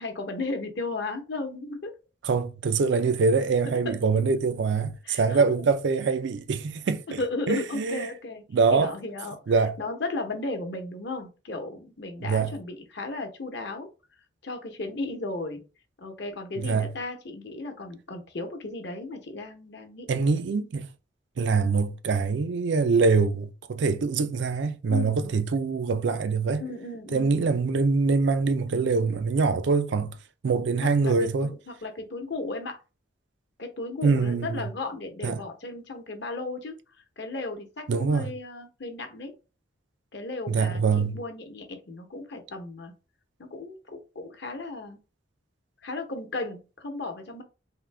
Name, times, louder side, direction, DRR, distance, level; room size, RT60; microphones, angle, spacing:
voice 1, 0.0-2.0 3.8-3.9 5.0-5.5 7.1-8.4 8.7-9.4 9.8-13.9 14.4-15.6 16.0-20.1 24.9-25.3 26.6-27.5 30.8-32.8 33.6-36.8 37.2-39.3 40.1-42.9 43.4-45.0 45.8-47.4, left 2 dB, 55° left, 0.9 m, -35 dB
voice 2, 2.2-7.2 7.5-8.1 8.5-8.9 9.5-9.8 12.2-12.5 16.6-16.9 20.1-20.9 21.4-26.6 27.1-30.2 30.4-31.5 34.0-34.6 35.2-35.4 37.9-38.3 40.5-41.2, right 4 dB, 60° right, 0.4 m, -24 dB
3.7 x 2.7 x 3.3 m
head